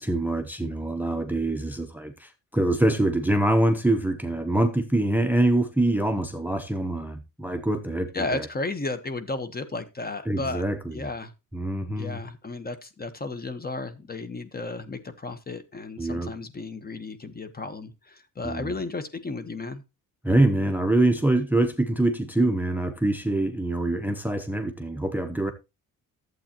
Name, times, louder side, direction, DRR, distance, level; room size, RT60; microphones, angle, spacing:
voice 1, 0.0-8.5 10.3-11.0 11.5-12.2 16.0-16.3 18.4-18.7 20.2-25.5, right 1 dB, 5° right, 0.7 m, -24 dB
voice 2, 8.1-10.6 10.9-11.3 12.0-19.8, left 3 dB, 25° left, 1.1 m, -33 dB
11.5 x 8.0 x 2.9 m
cardioid pair, 95°, 37 cm